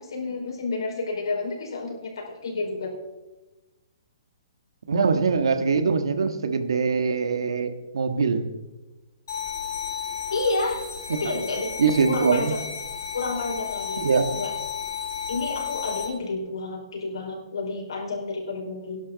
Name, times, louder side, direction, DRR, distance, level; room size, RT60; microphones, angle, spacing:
voice 1, 0.0-2.9 10.3-10.8 11.1-11.7 12.1-12.6 13.1-14.0 14.3-14.5 15.3-19.0, left 3 dB, 85° left, 0 dB, 5.0 m, -30 dB
voice 2, 4.9-8.5 11.1-11.2 11.8-12.6 14.0-14.3, right 5 dB, 85° right, 8 dB, 1.5 m, -23 dB
sound 1, 9.3-16.1, left 7 dB, 60° left, 3.2 m, -33 dB
18.5 x 11.0 x 4.0 m, 1.1 s
hypercardioid pair, 165°, 2 cm